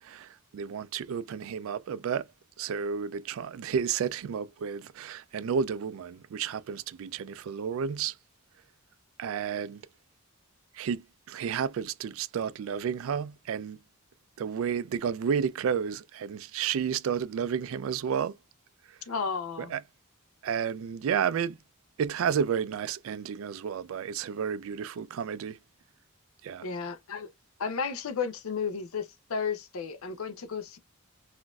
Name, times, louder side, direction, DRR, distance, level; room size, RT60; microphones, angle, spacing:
voice 1, 0.0-2.3 2.6-8.1 9.2-9.8 10.7-13.8 14.4-18.4 19.6-19.8 20.4-21.6 22.0-25.6 26.4-26.7, right 7 dB, 70° right, 0.3 m, -31 dB
voice 2, 19.1-19.7 26.6-27.3 27.6-30.8, left 5 dB, 75° left, 0.5 m, -33 dB
3.8 x 2.5 x 2.3 m
head